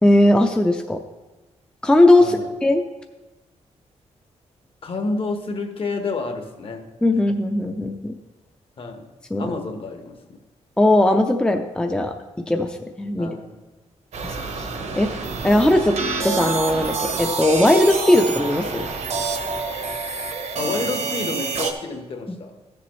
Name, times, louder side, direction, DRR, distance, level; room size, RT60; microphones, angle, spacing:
voice 1, 0.0-1.0 1.8-2.8 7.0-8.2 9.3-9.5 10.8-12.1 12.5-13.3 14.2-14.7 14.9-15.1 15.4-15.9 16.2-18.8, left 1 dB, 5° left, 5 dB, 0.5 m, -18 dB
voice 2, 4.8-6.9 8.8-9.1 9.4-10.4 13.2-13.5 20.6-22.6, left 3 dB, 50° left, 5 dB, 1.2 m, -29 dB
sound 1, 14.1-21.7, right 4 dB, 65° right, 1.1 m, -27 dB
14.0 x 6.9 x 3.2 m, 1.1 s
wide cardioid pair, 125°, 12 cm